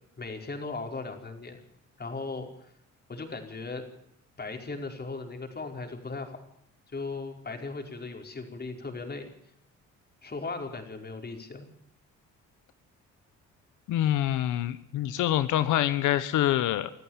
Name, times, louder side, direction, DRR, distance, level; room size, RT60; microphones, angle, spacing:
voice 1, 0.2-1.6 2.0-2.7 3.1-3.8 4.4-6.4 6.9-9.3 10.2-11.7, left 3 dB, 35° left, 4 dB, 5.0 m, -37 dB
voice 2, 13.9-16.9, left 12 dB, 90° left, 13 dB, 1.0 m, -26 dB
25.0 x 14.0 x 7.4 m, 0.69 s
cardioid pair, 90°, 30 cm